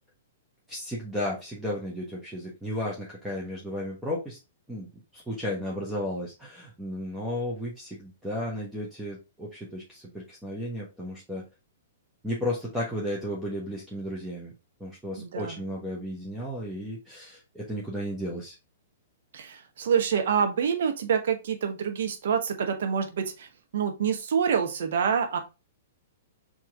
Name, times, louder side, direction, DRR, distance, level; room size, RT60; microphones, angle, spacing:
voice 1, 0.7-4.4 4.7-11.5 12.2-14.5 14.8-18.5, left 1 dB, 5° right, -5 dB, 1.2 m, -34 dB
voice 2, 15.2-15.6 19.3-25.4, right 7 dB, 60° right, 5 dB, 1.0 m, -27 dB
4.5 x 3.1 x 3.6 m, 0.28 s
figure-of-eight pair, 110°, 0 cm